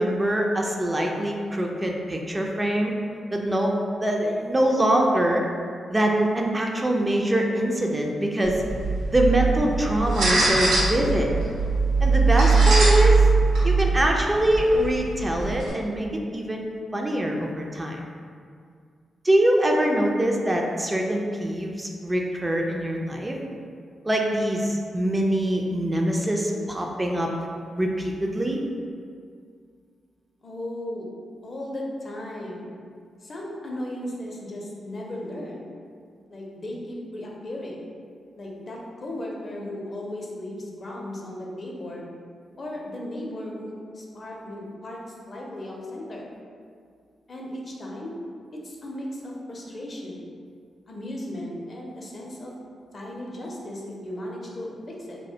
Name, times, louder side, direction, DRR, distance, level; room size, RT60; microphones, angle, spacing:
voice 1, 0.0-2.9 3.3-3.7 4.0-5.4 5.9-8.6 9.1-11.3 12.0-13.3 13.6-16.1 16.3-16.6 16.9-18.0 19.2-23.4 24.0-27.3 27.8-28.6, right 1 dB, 25° right, 0 dB, 0.3 m, -24 dB
sound 1, 8.4-15.7, right 3 dB, 85° right, 0.5 m, -21 dB
voice 2, 30.4-31.1 31.4-32.7 33.2-35.6 36.3-37.9 38.4-42.1 42.6-46.3 47.3-48.2 48.5-50.2 50.9-55.2, left 1 dB, 50° left, -2 dB, 0.5 m, -36 dB
2.3 x 2.1 x 2.7 m, 2.2 s
hypercardioid pair, 40°, 0 cm